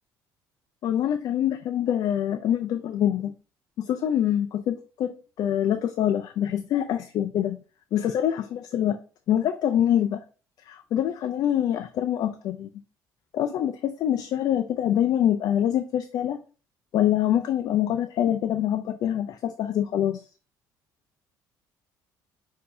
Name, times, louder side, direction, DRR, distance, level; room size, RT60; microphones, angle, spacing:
voice 1, 0.8-3.3 3.8-7.6 7.9-9.0 9.3-10.2 10.7-12.7 13.3-16.4 16.9-20.2, left 10 dB, 60° left, 0.4 m, -25 dB
6.5 x 2.7 x 2.7 m
cardioid pair, 100°, 8 cm